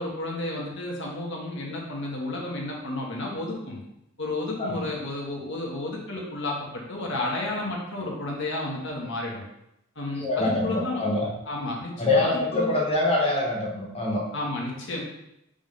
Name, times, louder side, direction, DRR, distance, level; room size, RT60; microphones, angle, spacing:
voice 1, 0.0-3.8 4.2-9.4 9.9-11.0 11.4-12.7 14.3-15.0, left 2 dB, 55° left, -2 dB, 1.5 m, -32 dB
voice 2, 10.2-11.3 12.0-14.2, left 2 dB, 30° left, -2 dB, 1.0 m, -25 dB
5.1 x 3.6 x 5.2 m, 0.83 s
head